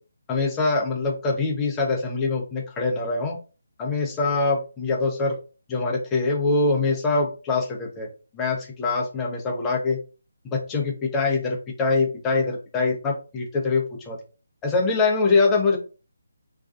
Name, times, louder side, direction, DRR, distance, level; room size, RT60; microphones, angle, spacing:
voice 1, 0.3-3.4 3.8-5.3 5.7-8.1 8.3-10.0 10.4-14.2 14.6-15.8, left 3 dB, 15° left, 0 dB, 0.6 m, -24 dB
2.5 x 2.2 x 2.4 m, 0.34 s
figure-of-eight pair, 150°, 0 cm